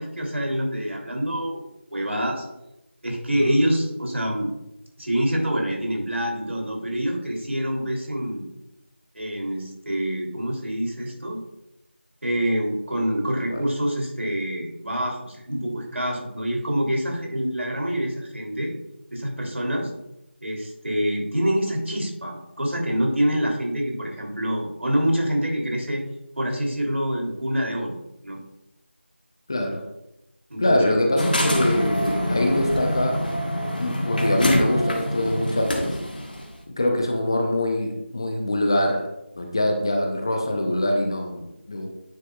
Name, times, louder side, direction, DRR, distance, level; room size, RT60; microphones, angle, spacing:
voice 1, 0.0-2.4 3.0-4.5 5.0-8.4 9.1-11.4 12.2-18.7 19.1-19.9 20.4-26.0 26.3-28.0 28.2-28.4 30.5-30.9, equal, 75° right, -1 dB, 2.9 m, -26 dB
voice 2, 29.5-29.8 30.6-33.2 33.8-36.0 36.8-39.1 39.3-41.9, left 1 dB, 25° left, 3 dB, 0.7 m, -23 dB
sound 1, 31.2-36.4, equal, 45° left, 1.3 m, -25 dB
9.4 x 7.5 x 2.3 m, 0.88 s
figure-of-eight pair, 170°, 7 cm